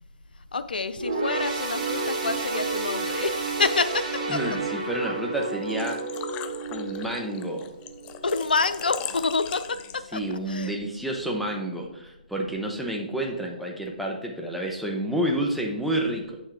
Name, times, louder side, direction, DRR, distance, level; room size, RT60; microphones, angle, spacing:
voice 1, 0.5-4.0 4.3-4.4 8.2-9.6 10.1-10.2 10.5-10.7, left 4 dB, 80° left, 12 dB, 0.6 m, -27 dB
sound 1, 1.0-8.6 9.1-9.2 10.1-10.2, right 3 dB, 50° right, 2.1 m, -31 dB
voice 2, 4.3-6.0 6.7-7.7 10.1-16.4, right 1 dB, ahead, -2 dB, 1.1 m, -29 dB
Engine / Trickle dribble / Fill (with liquid), 5.4-10.3, left 10 dB, 25° left, 0.4 m, -39 dB
7.9 x 6.1 x 3.4 m, 0.94 s
hypercardioid pair, 140°, 5 cm